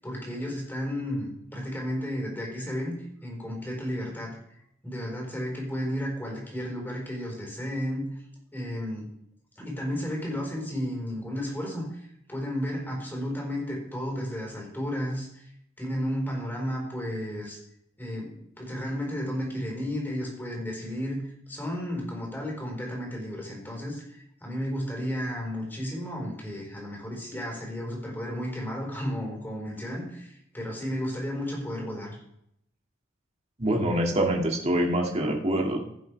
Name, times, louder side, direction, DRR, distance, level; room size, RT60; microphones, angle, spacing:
voice 1, 0.0-3.0 3.2-4.4 4.8-8.0 8.5-9.1 9.6-15.4 15.8-17.6 18.0-32.2, equal, 10° left, -2 dB, 4.5 m, -33 dB
voice 2, 33.6-35.8, right 1 dB, 35° right, 0 dB, 2.3 m, -25 dB
16.5 x 7.6 x 3.4 m, 0.74 s
head